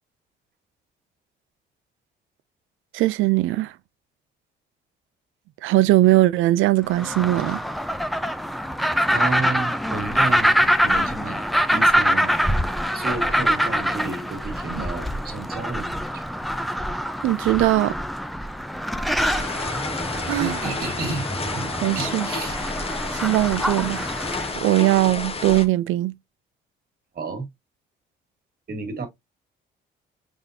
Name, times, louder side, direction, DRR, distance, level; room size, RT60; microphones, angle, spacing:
voice 1, 2.9-3.8 5.6-7.6 17.2-18.0 19.0-19.8 20.2-20.6 21.8-22.3 23.1-24.0 24.5-26.1, right 16 dB, 85° right, 0.4 m, -20 dB
sound 1, 6.9-24.6, equal, ahead, 0.4 m, -24 dB
voice 2, 9.1-10.5 10.8-12.3 12.9-16.2 20.4-22.6 27.1-27.5 28.7-29.1, right 3 dB, 50° right, 1.5 m, -31 dB
sound 2, 19.2-25.7, left 3 dB, 30° left, 0.8 m, -31 dB
5.0 x 3.5 x 2.6 m
cardioid pair, 90°, 20 cm